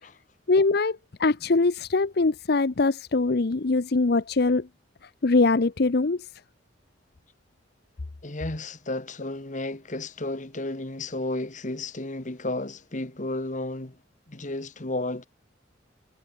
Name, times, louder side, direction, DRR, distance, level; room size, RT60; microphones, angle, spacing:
voice 1, 0.5-4.7 5.2-6.3, left 3 dB, 60° left, 0.7 m, -22 dB
voice 2, 8.2-14.0 14.3-15.2, left 2 dB, 40° left, 1.8 m, -33 dB
head